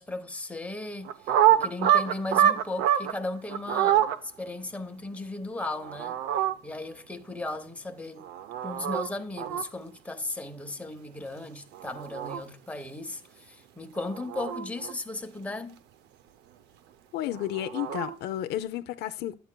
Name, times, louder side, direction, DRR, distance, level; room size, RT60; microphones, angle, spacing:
voice 1, 0.0-6.2 6.6-8.2 8.6-15.8, left 2 dB, 10° left, 0.9 m, -36 dB
sound 1, 1.0-3.1 3.5-4.2 5.8-6.5 8.2-9.1 9.4-9.6 11.7-12.4 14.0-14.9 17.3-18.1, right 11 dB, 85° right, 0.6 m, -25 dB
voice 2, 17.1-19.3, left 12 dB, 75° left, 0.5 m, -32 dB
11.0 x 8.4 x 2.2 m
cardioid pair, 110°, 17 cm